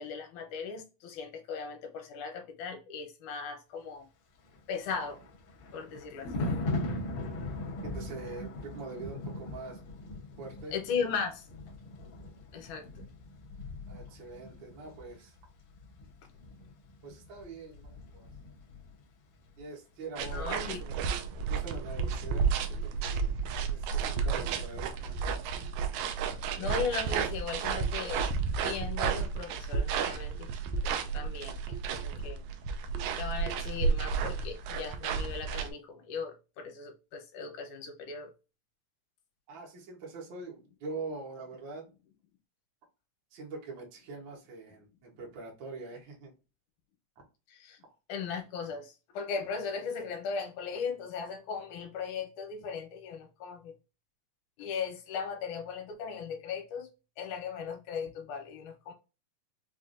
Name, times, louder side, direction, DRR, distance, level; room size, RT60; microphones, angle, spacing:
voice 1, 0.0-4.1 4.7-5.2 5.7-6.3 10.7-11.4 12.5-12.8 20.3-20.8 26.6-28.2 28.6-30.5 30.8-32.4 33.2-38.3 47.5-47.8 48.1-53.7 54.6-56.9 57.2-58.9, left 5 dB, 70° left, 2.2 m, -37 dB
Thunder, 4.5-19.0 19.3-19.6, left 2 dB, 90° left, 1.2 m, -40 dB
voice 2, 7.8-9.8 10.4-10.7 13.9-15.3 17.0-18.3 19.6-21.2 21.5-23.3 23.6-25.2 39.5-41.8 43.3-46.3 47.2-47.3, right 3 dB, 70° right, 1.1 m, -44 dB
sound 1, 20.2-35.7, right 6 dB, 85° right, 1.7 m, -32 dB
5.6 x 2.5 x 2.5 m
omnidirectional pair, 3.9 m